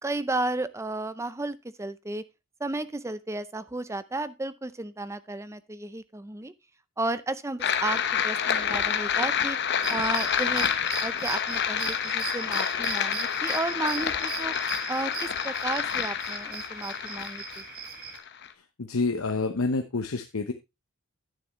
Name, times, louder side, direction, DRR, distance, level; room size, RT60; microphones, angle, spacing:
voice 1, 0.0-2.2 2.6-6.5 7.0-9.6 9.9-10.7 11.0-14.5 14.9-17.6, right 2 dB, 15° right, 14 dB, 0.5 m, -33 dB
sound 1, 7.6-18.5, left 8 dB, 55° left, 0.9 m, -28 dB
sound 2, 9.8-18.2, right 7 dB, 45° right, 1.7 m, -38 dB
voice 2, 18.8-20.5, left 3 dB, 90° left, 6 dB, 0.8 m, -28 dB
10.5 x 8.9 x 3.1 m, 0.23 s
head